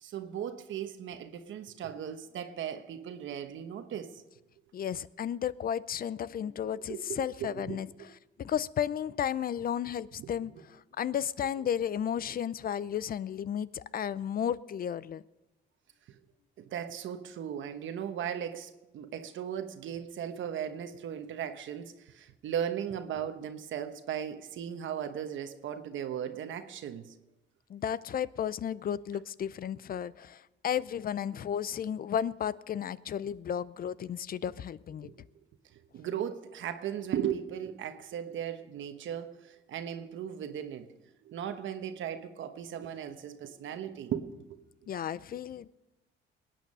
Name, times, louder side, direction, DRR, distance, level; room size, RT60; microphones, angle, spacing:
voice 1, 0.0-4.1 6.9-7.8 10.2-10.3 16.6-27.1 35.0-35.1 35.9-40.9 41.2-44.3, right 9 dB, 75° right, 8 dB, 1.1 m, -37 dB
voice 2, 4.7-7.9 8.4-10.5 11.0-15.2 27.7-35.1 44.9-45.8, left 9 dB, 50° left, 19 dB, 0.5 m, -33 dB
20.5 x 9.3 x 5.5 m, 1.0 s
cardioid pair, 90°, 20 cm